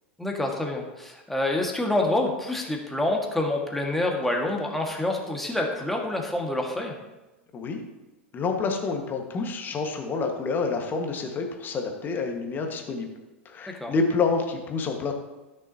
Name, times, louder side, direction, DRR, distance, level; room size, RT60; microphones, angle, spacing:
voice 1, 0.2-7.0 13.8-13.9, left 1 dB, 5° left, 0 dB, 1.7 m, -27 dB
voice 2, 8.3-13.1 13.4-15.1, left 4 dB, 30° left, 3 dB, 1.6 m, -28 dB
13.5 x 6.3 x 2.9 m, 1.1 s
hypercardioid pair, 90°, 7 cm